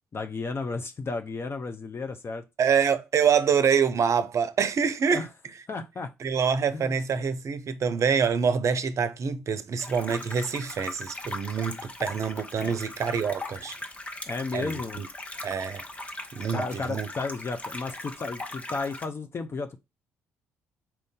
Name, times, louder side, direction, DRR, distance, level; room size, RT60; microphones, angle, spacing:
voice 1, 0.1-2.4 5.1-5.3 5.7-6.1 6.7-7.0 12.6-12.7 14.3-15.0 16.5-19.8, left 4 dB, 35° left, 0.6 m, -33 dB
voice 2, 2.6-5.2 6.2-13.7 14.5-15.1 15.4-15.8 16.3-17.1, right 6 dB, 50° right, 0.6 m, -26 dB
sound 1, 9.8-19.1, left 2 dB, 20° left, 0.9 m, -39 dB
4.5 x 2.6 x 3.6 m
hypercardioid pair, 50°, 7 cm